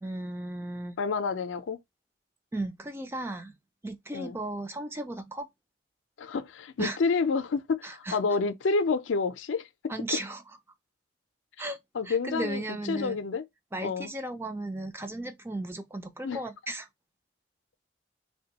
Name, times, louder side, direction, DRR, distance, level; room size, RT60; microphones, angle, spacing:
voice 1, 0.0-1.0 2.5-3.6 3.8-5.5 6.8-7.0 7.8-8.2 9.9-10.4 11.6-11.8 12.0-13.2 13.7-16.9, right 1 dB, 10° right, 0.4 m, -35 dB
voice 2, 1.0-1.8 4.1-4.4 6.2-9.7 11.9-12.6 12.9-13.4 13.8-14.1 16.2-16.4, left 4 dB, 85° left, 0.4 m, -29 dB
3.4 x 2.2 x 2.8 m
head